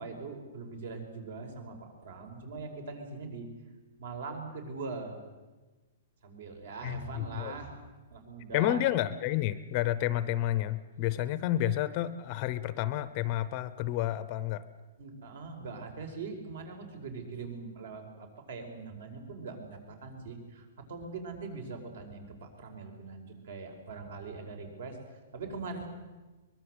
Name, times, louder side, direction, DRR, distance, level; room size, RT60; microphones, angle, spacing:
voice 1, 0.0-3.5 4.0-5.2 6.2-7.7 8.1-8.8 15.0-25.9, right 4 dB, 60° right, 6 dB, 5.2 m, -42 dB
voice 2, 6.8-7.5 8.5-14.6, left 13 dB, 25° left, 15 dB, 0.7 m, -30 dB
23.5 x 21.5 x 8.0 m, 1.2 s
hypercardioid pair, 180°, 0 cm